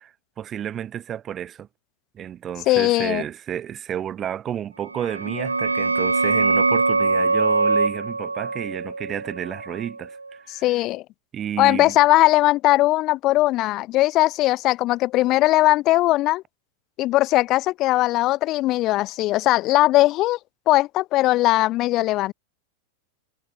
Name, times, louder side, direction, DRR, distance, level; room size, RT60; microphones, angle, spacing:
voice 1, 0.0-1.7 2.1-10.6 11.3-12.0, right 10 dB, 25° right, 6.9 m, -31 dB
voice 2, 2.7-3.2 10.5-11.0 11.6-16.4 17.0-20.4 20.7-22.3, left 17 dB, 35° left, 3.4 m, -19 dB
sound 1, 4.9-10.3, right 3 dB, 80° right, 2.1 m, -23 dB
figure-of-eight pair, 90°, 0 cm